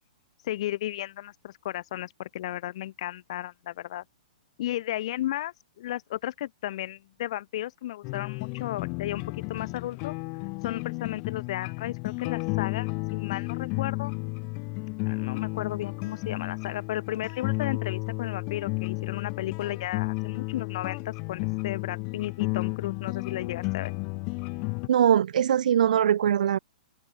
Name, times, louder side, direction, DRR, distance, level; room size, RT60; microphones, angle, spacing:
voice 1, 0.4-4.0 4.6-9.2 9.5-10.1 10.6-14.2 15.1-23.9, left 14 dB, 45° left, 7.9 m, -34 dB
sound 1, 8.0-24.9, left 34 dB, 30° left, 6.1 m, -32 dB
voice 2, 24.9-26.6, right 9 dB, 70° right, 0.5 m, -21 dB
open air
hypercardioid pair, 170°, 4 cm